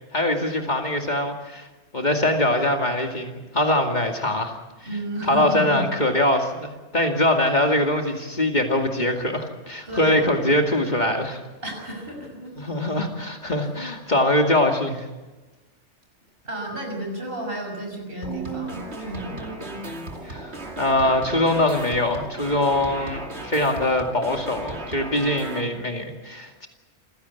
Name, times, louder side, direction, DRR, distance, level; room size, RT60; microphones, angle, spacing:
voice 1, 0.1-1.7 1.9-4.5 5.3-11.4 12.6-15.1 20.2-26.7, left 1 dB, 40° left, 3 dB, 2.5 m, -23 dB
voice 2, 4.8-5.8 9.9-10.3 11.6-12.7 16.4-19.5, right 1 dB, 55° right, 2 dB, 6.4 m, -32 dB
sound 1, 18.2-25.6, right 2 dB, 70° right, 2.9 m, -35 dB
28.0 x 16.5 x 8.4 m, 1.2 s
omnidirectional pair, 1.2 m